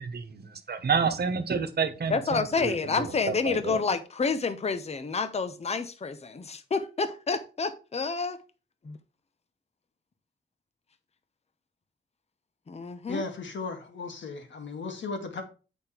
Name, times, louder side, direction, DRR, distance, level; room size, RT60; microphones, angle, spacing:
voice 1, 0.0-3.8, right 5 dB, 55° right, 1.2 m, -30 dB
voice 2, 2.1-8.4 8.8-9.0 12.7-13.2, left 4 dB, 35° left, 0.8 m, -29 dB
voice 3, 13.1-15.4, left 3 dB, 70° left, 2.1 m, -36 dB
8.7 x 5.3 x 4.4 m
wide cardioid pair, 130°, 20 cm